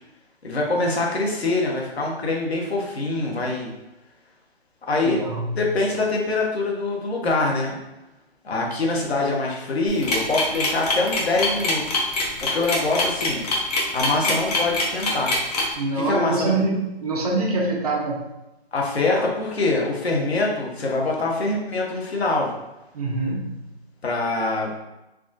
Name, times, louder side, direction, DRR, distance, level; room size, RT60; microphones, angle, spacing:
voice 1, 0.4-3.7 4.9-5.2 5.5-7.8 8.4-12.0 12.4-13.4 13.9-15.3 15.9-16.6 18.7-22.5 24.0-24.7, left 2 dB, 80° left, -1 dB, 1.0 m, -24 dB
voice 2, 5.0-5.6 15.8-18.3 19.1-19.3 22.9-23.5, right 2 dB, 40° right, -1 dB, 0.6 m, -25 dB
sound 1, 9.9-15.7, left 2 dB, 40° left, 0.8 m, -24 dB
3.5 x 2.3 x 2.6 m, 0.98 s
hypercardioid pair, 155°, 31 cm